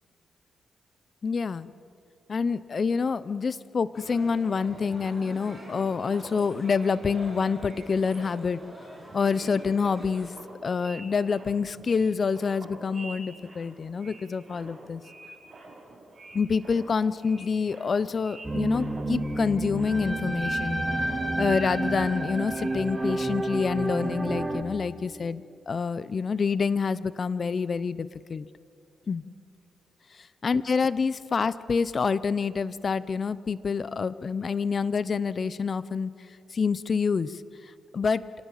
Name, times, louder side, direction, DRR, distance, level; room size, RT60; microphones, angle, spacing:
voice 1, 1.2-1.7 2.3-8.6 9.1-10.3 10.6-15.0 16.3-20.8 21.4-28.5 29.1-29.2 30.4-36.1 36.5-38.2, left 5 dB, 45° left, 17 dB, 0.7 m, -27 dB
sound 1, 3.9-10.3, right 1 dB, ahead, 6.6 m, -45 dB
sound 2, 4.7-8.6 8.9-23.7, right 2 dB, 40° right, 7.7 m, -48 dB
sound 3, 18.4-24.6, right 1 dB, 20° right, 2.3 m, -29 dB
26.0 x 18.0 x 7.5 m, 2.5 s
cardioid pair, 80°, 0 cm